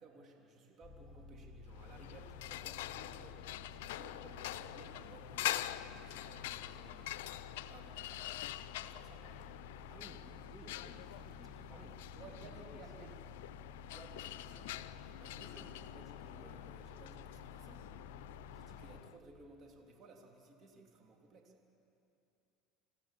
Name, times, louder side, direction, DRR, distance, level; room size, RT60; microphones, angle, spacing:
voice 1, 0.0-7.1 7.7-9.6 11.5-11.8 12.1-13.1 13.9-14.8 15.2-17.9 18.5-21.5, right 3 dB, 40° right, 1 dB, 3.2 m, -58 dB
sound 1, 0.8-19.0, left 3 dB, 10° left, 2.6 m, -54 dB
sound 2, 1.7-19.2, left 14 dB, 85° left, 0.5 m, -45 dB
voice 2, 9.9-12.0 12.4-12.5 13.0-13.1, right 3 dB, 20° right, 4 dB, 2.2 m, -57 dB
27.0 x 15.0 x 7.5 m, 2.7 s
supercardioid pair, 110°, 0 cm